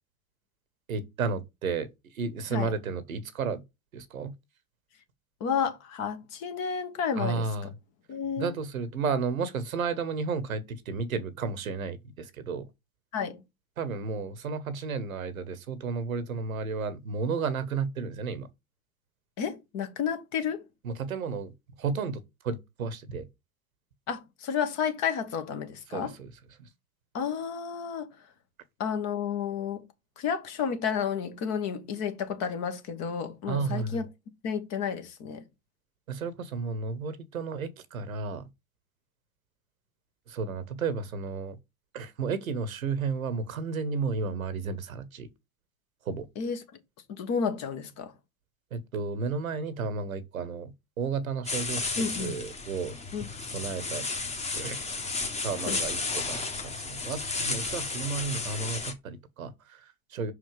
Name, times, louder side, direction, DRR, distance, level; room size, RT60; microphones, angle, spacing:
voice 1, 0.9-3.6 3.9-4.3 7.2-7.7 8.4-12.7 13.8-18.5 20.8-21.5 21.8-23.3 25.9-26.3 26.6-26.7 33.5-34.0 36.1-38.5 40.3-41.6 41.9-45.3 46.0-46.3 48.7-53.0 53.4-54.1 54.6-54.8 55.4-60.3, right 4 dB, 70° right, 1.2 m, -33 dB
voice 2, 5.4-7.5 8.1-8.5 13.1-13.4 19.4-20.6 24.1-26.1 27.1-28.1 28.8-29.9 30.2-34.1 34.4-35.5 46.3-46.6 47.1-48.1 52.0-52.3 53.1-53.2 55.7-55.8, left 7 dB, 40° left, 1.6 m, -31 dB
sound 1, 51.4-58.9, left 3 dB, 15° left, 1.5 m, -33 dB
5.6 x 4.9 x 5.0 m
figure-of-eight pair, 85°, 43 cm